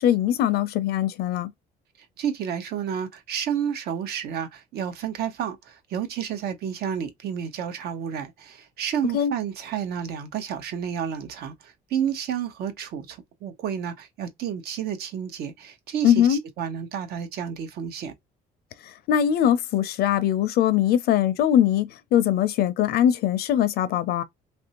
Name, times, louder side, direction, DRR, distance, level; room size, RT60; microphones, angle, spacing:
voice 1, 0.0-1.5 9.1-9.3 16.0-16.4 18.8-24.2, left 10 dB, 70° left, 0.5 m, -21 dB
voice 2, 2.2-18.1, right 8 dB, 70° right, 0.9 m, -31 dB
3.2 x 2.6 x 2.8 m
cardioid pair, 110°, 17 cm